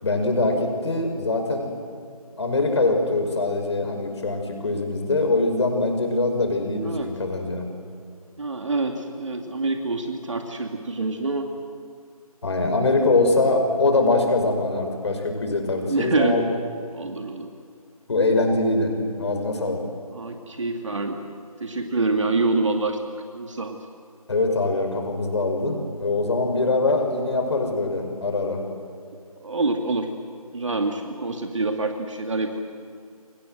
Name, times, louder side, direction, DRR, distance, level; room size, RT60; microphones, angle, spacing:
voice 1, 0.0-1.7 2.4-7.7 12.4-16.4 18.1-18.9 19.2-19.8 24.3-28.6, left 2 dB, 45° left, 4 dB, 5.7 m, -23 dB
voice 2, 6.8-7.2 8.4-11.5 15.9-16.5 16.9-17.5 20.1-21.2 21.6-23.8 29.4-30.1 30.5-32.6, right 3 dB, 55° right, 4 dB, 2.3 m, -26 dB
30.0 x 24.0 x 7.9 m, 2.3 s
figure-of-eight pair, 160°, 19 cm